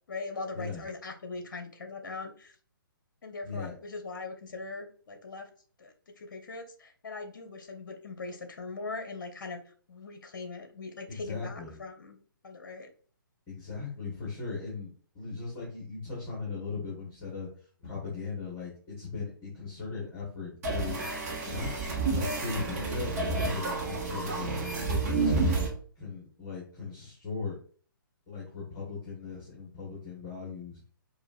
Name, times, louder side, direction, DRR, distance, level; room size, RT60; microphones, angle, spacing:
voice 1, 0.1-2.5 3.2-5.5 5.8-12.2 12.4-12.9, left 3 dB, 60° left, 5 dB, 0.8 m, -41 dB
voice 2, 3.4-3.7 11.2-11.7 13.5-17.5 17.8-21.0 21.4-25.6 25.9-27.6 28.3-30.8, left 4 dB, 25° left, -6 dB, 1.6 m, -38 dB
sound 1, 20.6-25.7, right 3 dB, 40° right, 1.2 m, -30 dB
4.9 x 2.5 x 2.6 m, 0.43 s
figure-of-eight pair, 130°, 12 cm